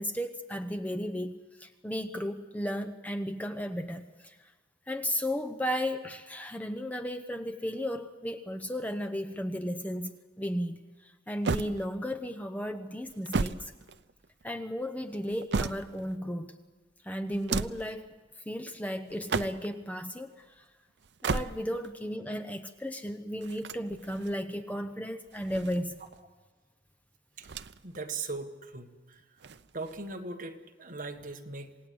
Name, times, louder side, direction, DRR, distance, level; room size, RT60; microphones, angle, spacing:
voice 1, 0.0-4.4 4.9-13.7 14.4-16.5 17.0-18.1 18.5-20.6 21.2-26.0, equal, 10° left, 7 dB, 0.8 m, -34 dB
sound 1, 11.4-12.3 13.0-14.4 15.1-16.1 17.3-18.0 19.1-19.8 21.0-21.9 23.4-24.4 25.3-26.2 27.4-28.0 28.3-28.4 29.4-30.2, right 4 dB, 70° right, 0.6 m, -34 dB
voice 2, 27.8-29.2 29.7-31.9, right 3 dB, 45° right, 4 dB, 1.7 m, -39 dB
27.5 x 18.0 x 7.9 m, 1.4 s
head